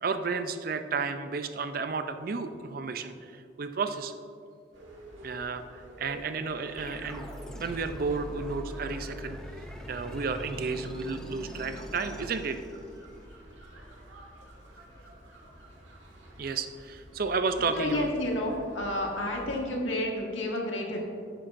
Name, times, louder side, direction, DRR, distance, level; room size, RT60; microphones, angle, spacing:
voice 1, 0.0-4.1 5.2-7.3 7.6-9.4 9.9-12.6 16.4-18.1, right 4 dB, 50° right, 9 dB, 0.4 m, -32 dB
sound 1, 4.7-19.6, right 1 dB, 80° right, 1.6 m, -50 dB
sound 2, 6.8-13.2, equal, 5° left, 0.5 m, -42 dB
voice 2, 17.7-21.0, left 1 dB, 85° left, -1 dB, 1.6 m, -30 dB
10.5 x 9.1 x 2.6 m, 2.4 s
head